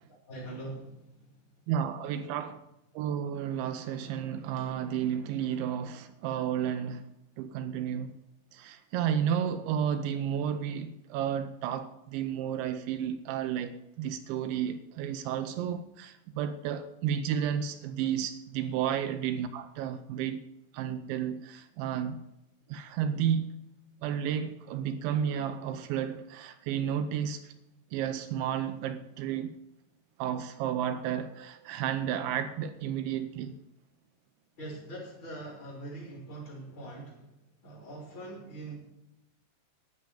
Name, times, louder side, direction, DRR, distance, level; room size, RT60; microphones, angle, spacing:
voice 1, 0.3-1.1 34.6-37.2 37.6-38.7, right 2 dB, 25° left, 4.1 m, -42 dB
voice 2, 1.7-2.6 2.9-7.1 7.4-8.1 8.5-20.4 20.7-22.2 22.7-23.5 24.0-27.5 27.9-29.5 30.2-33.6, right 9 dB, 80° right, 3.0 m, -32 dB
11.5 x 10.0 x 7.0 m
omnidirectional pair, 5.4 m